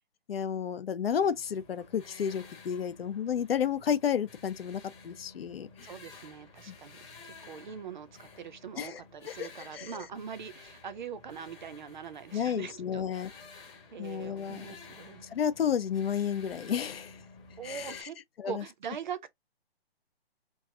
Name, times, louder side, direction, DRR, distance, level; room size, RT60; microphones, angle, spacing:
voice 1, 0.3-5.7 6.7-6.8 8.8-9.0 9.4-9.5 9.7-9.9 12.3-13.3 14.0-14.8 15.3-17.1 17.6-18.1 18.4-18.6, left 8 dB, 70° left, 0.7 m, -31 dB
sound 1, 1.0-18.0, left 4 dB, 25° left, 1.1 m, -52 dB
voice 2, 5.8-7.0 7.2-13.0 13.9-15.2 17.6-18.1 18.4-19.3, right 7 dB, 50° right, 0.6 m, -42 dB
3.1 x 2.4 x 3.6 m
hypercardioid pair, 160°, 31 cm